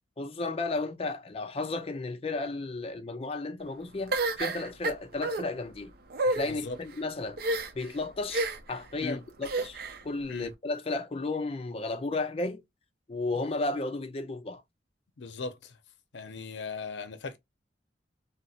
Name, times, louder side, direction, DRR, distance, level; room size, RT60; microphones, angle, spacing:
voice 1, 0.2-5.9 6.2-7.4 7.7-9.8 10.0-12.6 13.1-14.6, left 2 dB, 35° left, 0.5 m, -33 dB
sound 1, 4.1-5.4 6.1-6.5 7.4-7.9 8.3-8.8 9.4-10.0, right 2 dB, 60° right, 0.5 m, -29 dB
voice 2, 6.4-6.8 9.0-9.2 10.3-10.5 15.2-15.8 16.1-17.4, left 4 dB, 85° left, 0.6 m, -38 dB
4.0 x 2.0 x 2.4 m
head